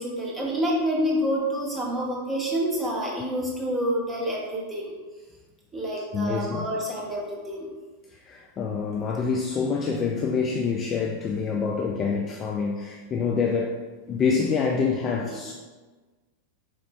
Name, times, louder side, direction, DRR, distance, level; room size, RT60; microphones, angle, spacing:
voice 1, 0.0-4.9 5.7-7.7, equal, 10° right, -4 dB, 1.0 m, -28 dB
voice 2, 6.1-6.7 8.2-13.8 14.1-15.5, left 5 dB, 30° left, 0 dB, 0.3 m, -26 dB
4.4 x 2.5 x 3.1 m, 1.3 s
figure-of-eight pair, 90°, 0 cm